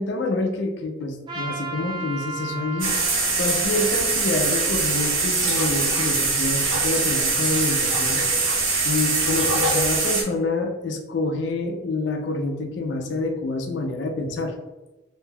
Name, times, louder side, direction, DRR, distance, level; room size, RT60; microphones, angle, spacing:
voice 1, 0.0-3.0 3.4-8.2 8.8-14.5, left 2 dB, 60° left, 5 dB, 0.4 m, -27 dB
Trumpet, 1.3-5.6, right 3 dB, 25° right, 0.6 m, -36 dB
sound 1, 2.8-10.2, right 3 dB, 85° right, 0.7 m, -22 dB
2.6 x 2.2 x 3.3 m, 1.1 s
head